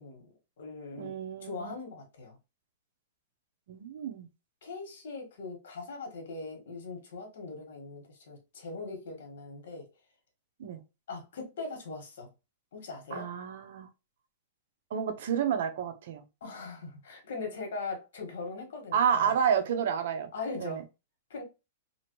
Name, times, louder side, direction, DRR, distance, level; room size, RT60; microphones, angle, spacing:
voice 1, 0.0-2.4 4.6-9.8 11.1-12.3 12.7-13.3 16.4-19.4 20.3-20.8 21.3-21.4, left 3 dB, 75° left, 1.3 m, -40 dB
voice 2, 1.0-1.7 3.7-4.3 10.6-10.8 13.1-13.9 14.9-16.2 18.9-20.3 20.6-20.8, right 7 dB, 65° right, 0.6 m, -30 dB
2.8 x 2.6 x 2.9 m
hypercardioid pair, 150°, 0 cm